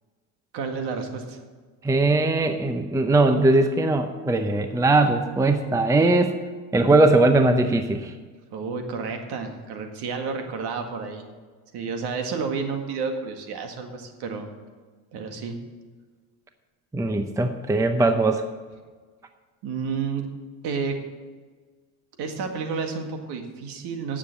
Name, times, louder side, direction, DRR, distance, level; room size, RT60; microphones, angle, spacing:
voice 1, 0.5-1.4 8.5-11.2 11.7-14.5 15.1-15.6 19.6-20.3 20.6-21.0 22.2-24.2, right 5 dB, 55° right, 5 dB, 1.9 m, -30 dB
voice 2, 1.8-6.3 6.7-8.1 16.9-18.4, right 2 dB, 5° right, 8 dB, 0.7 m, -20 dB
9.5 x 7.3 x 7.7 m, 1.4 s
supercardioid pair, 90°, 46 cm